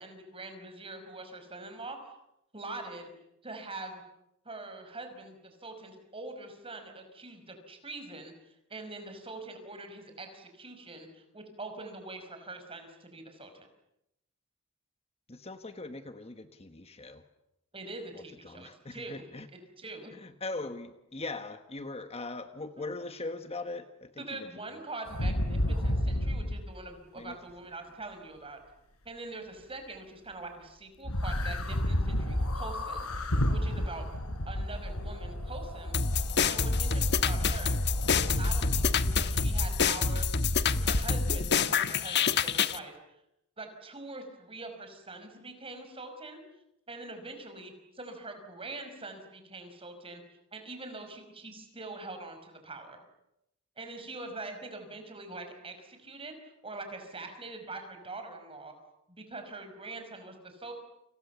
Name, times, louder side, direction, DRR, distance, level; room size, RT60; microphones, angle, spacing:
voice 1, 0.0-2.0 2.5-3.1 3.4-4.0 4.5-13.7 17.7-19.2 19.8-20.1 24.2-28.6 29.1-33.1 33.5-34.0 34.5-36.0 36.5-37.8 38.1-40.3 40.7-43.0 43.6-46.4 46.9-50.2 50.5-53.0 53.8-56.3 56.6-58.7 59.1-60.7, right 2 dB, 25° right, 6 dB, 5.4 m, -43 dB
voice 2, 15.3-17.2 18.1-19.5 20.1-24.5 27.1-27.4, left 2 dB, 30° left, 8 dB, 1.3 m, -40 dB
sound 1, 25.0-26.6 31.0-40.3 40.9-41.0, left 1 dB, 90° left, 4.0 m, -32 dB
sound 2, 35.9-42.8, left 5 dB, 50° left, 1.2 m, -27 dB
30.0 x 27.5 x 7.1 m, 0.84 s
head